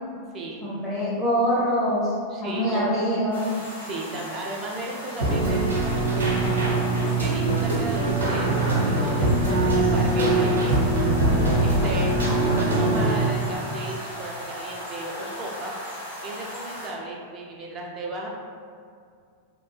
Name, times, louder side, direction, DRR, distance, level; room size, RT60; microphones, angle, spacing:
voice 1, 0.6-2.1 2.4-3.6, equal, 20° left, -8 dB, 1.1 m, -24 dB
voice 2, 2.3-2.9 3.8-6.5 7.1-11.0 11.4-18.3, right 2 dB, 30° right, -2 dB, 0.4 m, -35 dB
sound 1, 3.3-16.9, equal, 75° left, 0.8 m, -37 dB
Keyboard (musical), 5.2-13.2, right 2 dB, 70° right, 0.6 m, -22 dB
2.7 x 2.1 x 3.1 m, 2.2 s
figure-of-eight pair, 90°, 0 cm